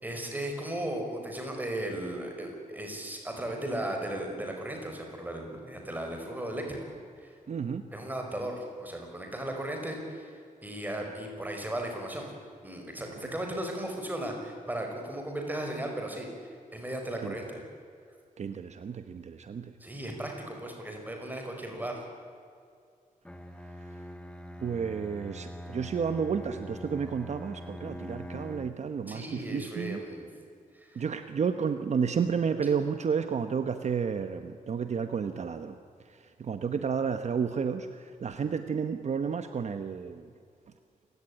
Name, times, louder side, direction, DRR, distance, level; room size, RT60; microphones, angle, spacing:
voice 1, 0.0-6.9 7.2-7.4 7.9-12.3 12.6-16.3 16.7-17.6 19.8-22.0 29.1-30.3 30.7-31.0, right 1 dB, 10° right, 2 dB, 5.1 m, -36 dB
voice 2, 7.5-7.8 13.1-13.3 17.2-17.3 18.4-19.7 23.8-24.1 24.6-30.0 30.9-35.8 36.0-40.3, right 6 dB, 55° right, 9 dB, 1.1 m, -31 dB
Bowed string instrument, 23.2-28.9, equal, 5° left, 1.2 m, -43 dB
28.0 x 17.0 x 10.0 m, 2.3 s
wide cardioid pair, 145°, 14 cm